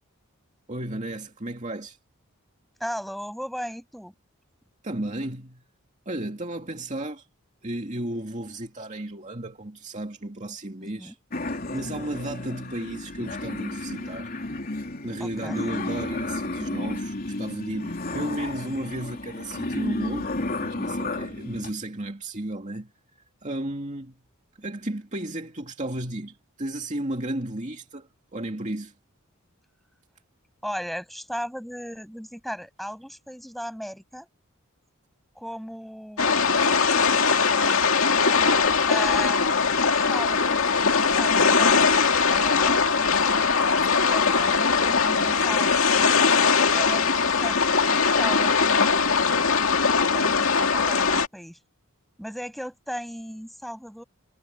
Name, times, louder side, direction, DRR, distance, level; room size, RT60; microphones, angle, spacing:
voice 1, 0.7-2.0 4.8-5.6 6.1-7.3 7.6-11.2 11.7-14.3 15.0-20.3 20.6-22.9 23.4-24.2 24.6-28.9, right 1 dB, 35° right, 2.4 m, -33 dB
voice 2, 2.8-4.1 10.8-11.1 11.8-12.0 15.2-15.7 30.6-34.3 35.4-38.0 38.9-39.6 39.9-41.9 42.3-45.8 46.7-49.4 50.1-51.6 52.2-54.0, equal, ahead, 7.0 m, -37 dB
sound 1, 11.3-21.7, left 2 dB, 40° left, 3.3 m, -32 dB
sound 2, 36.2-51.3, left 5 dB, 70° left, 2.2 m, -21 dB
head